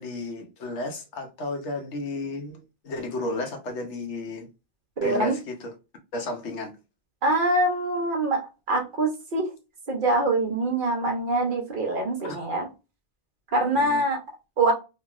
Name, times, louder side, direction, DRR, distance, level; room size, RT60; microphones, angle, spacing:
voice 1, 0.0-4.5 5.0-5.7 6.1-6.7 12.2-12.4 13.7-14.0, left 2 dB, 80° left, 1.1 m, -33 dB
voice 2, 5.0-5.3 7.2-9.5 9.9-12.7 13.5-14.2 14.6-14.7, right 2 dB, 50° right, 0.9 m, -24 dB
3.0 x 2.6 x 2.4 m
omnidirectional pair, 1.2 m